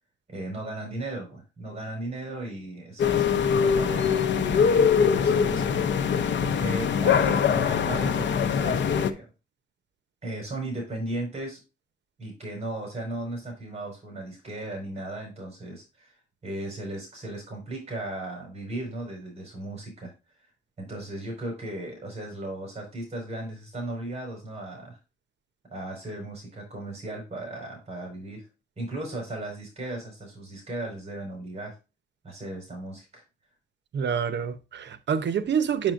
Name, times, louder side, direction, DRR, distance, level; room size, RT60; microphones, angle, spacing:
voice 1, 0.3-9.2 10.2-11.6 12.2-16.1 16.4-20.1 20.8-25.0 25.7-28.4 28.8-31.7 32.2-33.2, right 1 dB, 35° right, 4.8 m, -36 dB
sound 1, 3.0-9.1, left 7 dB, 75° left, 0.7 m, -23 dB
voice 2, 33.9-35.9, right 7 dB, 70° right, 0.8 m, -27 dB
7.5 x 7.4 x 2.5 m
wide cardioid pair, 135°, 19 cm